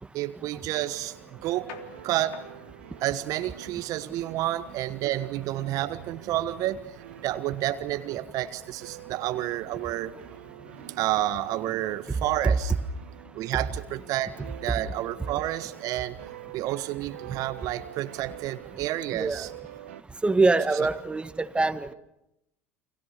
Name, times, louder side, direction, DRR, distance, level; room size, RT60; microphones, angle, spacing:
voice 1, 0.1-1.2 1.4-1.7 2.0-2.4 3.0-10.1 11.0-12.7 13.3-14.3 14.6-16.2 16.5-19.5, right 14 dB, 55° right, 10 dB, 1.3 m, -30 dB
sound 1, 0.9-20.0, right 15 dB, 80° right, 1.0 m, -47 dB
sound 2, 1.3-17.4, left 4 dB, 70° left, 3.5 m, -55 dB
voice 2, 19.1-19.5 20.2-21.3 21.5-21.9, right 3 dB, 15° right, 12 dB, 1.7 m, -23 dB
30.0 x 25.5 x 6.8 m, 0.87 s
hypercardioid pair, 75°, 7 cm